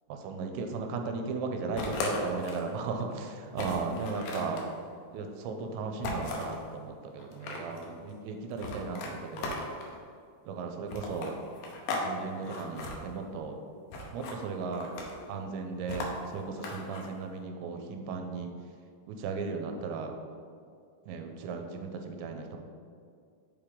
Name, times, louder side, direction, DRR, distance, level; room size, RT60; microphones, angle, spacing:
voice 1, 0.2-4.6 5.1-9.6 10.5-11.4 11.9-13.6 14.1-14.9 15.3-18.5 19.1-20.1 21.1-22.6, right 4 dB, 85° right, 4 dB, 2.9 m, -36 dB
sound 1, 1.8-2.7 3.1-3.2 3.5-4.7 6.0-6.6 7.2-7.9 8.6-9.9 10.9-12.1 12.4-13.0 13.9-14.4 14.7-15.3 15.9-17.1, left 2 dB, 75° left, 2.3 m, -36 dB
7.1 x 4.9 x 3.6 m, 2.3 s
omnidirectional pair, 5.1 m